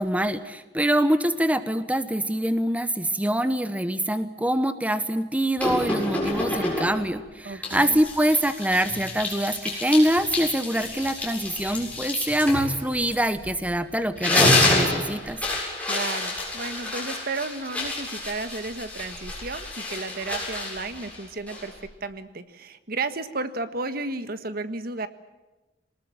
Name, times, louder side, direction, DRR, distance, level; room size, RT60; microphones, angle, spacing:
voice 1, 0.0-15.4, right 1 dB, 10° right, 11 dB, 1.0 m, -24 dB
sound 1, 5.6-7.1 7.6-13.7 14.0-21.9, left 2 dB, 10° left, 7.7 m, -28 dB
voice 2, 7.4-8.0 15.9-21.7 22.0-25.1, right 3 dB, 60° right, 11 dB, 1.6 m, -33 dB
24.0 x 20.0 x 8.8 m, 1.1 s
head